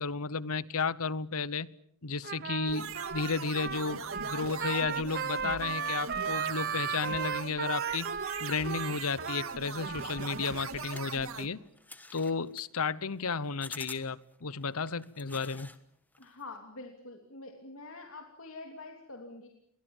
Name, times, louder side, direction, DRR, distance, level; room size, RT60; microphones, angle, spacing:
voice 1, 0.0-1.7 2.0-11.6 12.1-15.7, left 4 dB, 90° left, 1.0 m, -33 dB
Trumpet, 2.2-10.5, right 7 dB, 45° right, 1.0 m, -36 dB
sound 1, 2.7-11.5, right 5 dB, 75° right, 2.0 m, -40 dB
sound 2, 10.0-15.8 16.1-16.6, left 3 dB, 10° left, 1.3 m, -49 dB
voice 2, 16.2-19.5, left 3 dB, 70° left, 3.1 m, -46 dB
29.5 x 23.0 x 7.3 m
head